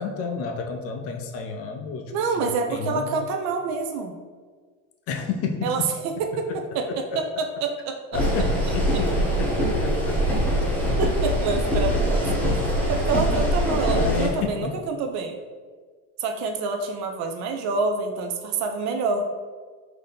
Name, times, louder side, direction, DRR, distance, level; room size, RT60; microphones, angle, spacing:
voice 1, 0.0-3.3 5.1-5.9 6.5-6.6 6.9-7.2 8.1-10.4 13.9-14.8, left 5 dB, 40° left, 4 dB, 0.5 m, -31 dB
voice 2, 2.1-4.1 5.6-8.0 11.0-12.3 12.6-15.4 16.2-19.3, right 4 dB, 50° right, 5 dB, 0.5 m, -27 dB
sound 1, 8.1-14.3, equal, 5° left, 0.9 m, -23 dB
3.9 x 2.7 x 3.4 m, 1.5 s
supercardioid pair, 130°, 37 cm